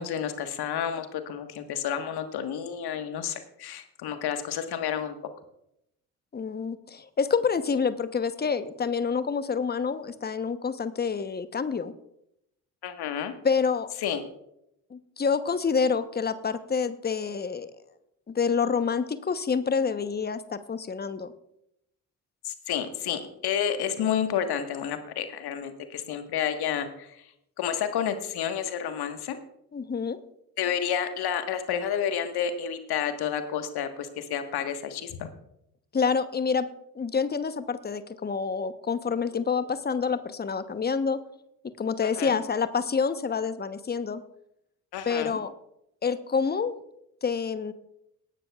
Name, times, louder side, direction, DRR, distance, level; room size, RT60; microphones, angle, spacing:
voice 1, 0.0-5.2 12.8-13.3 14.0-14.2 22.4-27.1 27.6-29.4 30.6-35.3 42.0-42.4 44.9-45.4, left 8 dB, 55° left, 8 dB, 1.6 m, -30 dB
voice 2, 6.3-11.9 13.4-13.9 14.9-17.7 18.3-21.3 29.7-30.2 35.9-36.7 36.9-41.2 41.8-44.2 45.0-45.5 46.0-46.7 47.2-47.7, left 5 dB, 20° left, 12 dB, 1.0 m, -27 dB
19.0 x 11.0 x 2.4 m, 0.78 s
figure-of-eight pair, 45°, 45 cm